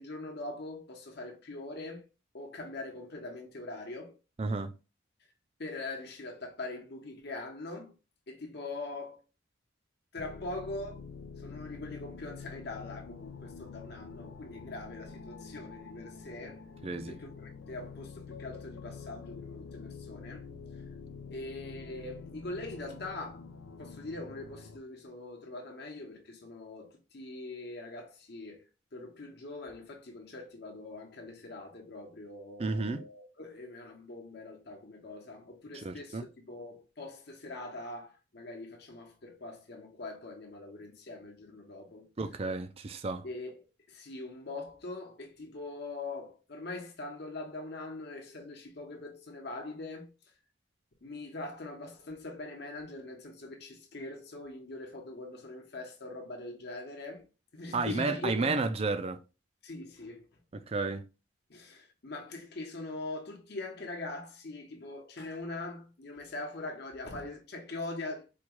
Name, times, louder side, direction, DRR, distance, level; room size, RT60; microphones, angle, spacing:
voice 1, 0.0-2.0 2.3-4.2 5.6-7.9 8.3-9.2 10.1-11.0 11.4-16.6 17.1-20.5 21.3-23.4 23.8-28.7 28.9-42.1 43.2-50.1 51.0-57.2 57.5-58.7 59.6-60.4 61.5-68.3, left 2 dB, 55° left, 1.0 m, -42 dB
voice 2, 4.4-4.7 16.8-17.1 32.6-33.0 35.7-36.2 42.2-43.3 57.7-59.2 60.5-61.0, right 3 dB, 30° right, 0.4 m, -32 dB
sound 1, 10.2-24.8, left 5 dB, 90° left, 0.5 m, -47 dB
4.4 x 2.3 x 2.9 m
head